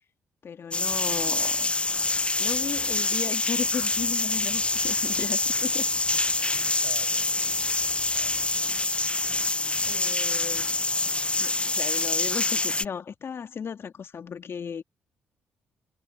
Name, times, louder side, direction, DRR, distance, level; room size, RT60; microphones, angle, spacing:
voice 1, 0.4-1.7 2.4-5.9 9.9-10.8 11.4-14.8, left 7 dB, 50° left, 2.3 m, -35 dB
sound 1, 0.7-12.8, left 2 dB, 20° left, 0.9 m, -26 dB
voice 2, 5.2-5.6 6.4-7.7 8.1-8.6 9.7-10.2, right 15 dB, 75° right, 5.9 m, -51 dB
hypercardioid pair, 45°, 5 cm